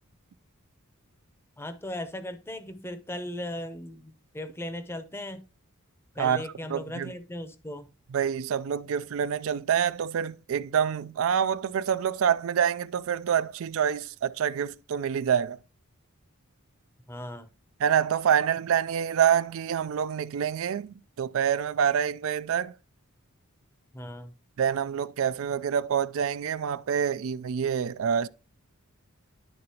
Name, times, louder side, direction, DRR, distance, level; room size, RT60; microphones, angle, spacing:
voice 1, 1.6-5.4 6.1-7.9 17.1-17.5 23.9-24.3, left 1 dB, 10° left, 0.6 m, -37 dB
voice 2, 6.7-7.1 8.1-15.6 17.8-22.7 24.6-28.3, right 8 dB, 65° right, 0.3 m, -26 dB
11.0 x 3.8 x 2.8 m
head